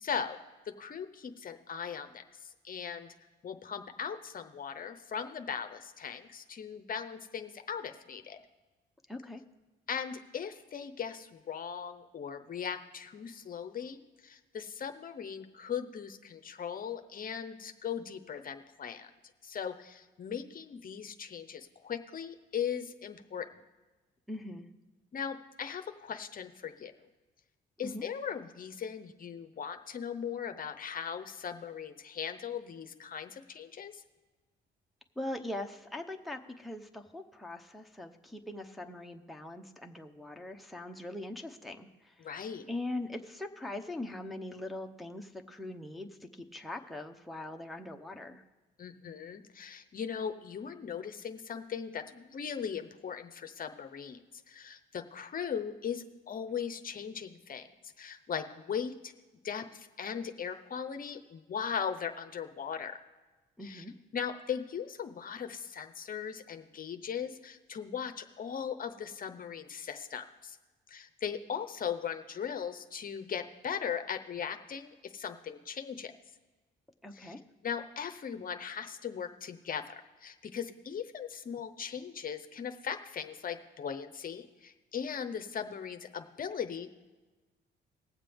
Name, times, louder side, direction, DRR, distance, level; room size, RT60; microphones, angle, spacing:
voice 1, 0.0-0.4 0.7-3.1 3.4-8.4 9.9-19.1 19.4-23.5 25.1-26.9 27.8-34.0 42.2-42.6 48.8-57.7 58.0-59.1 59.4-63.0 63.6-63.8 64.1-70.6 70.9-76.1 77.1-77.3 77.6-79.9 80.2-86.9, left 7 dB, 45° left, 7 dB, 0.7 m, -39 dB
voice 2, 9.1-9.4 24.3-24.6 27.8-28.1 35.2-42.3 42.7-48.4 63.6-63.9 77.0-77.4, left 1 dB, ahead, 2 dB, 0.8 m, -41 dB
19.5 x 7.4 x 3.5 m, 1.2 s
cardioid pair, 90°, 20 cm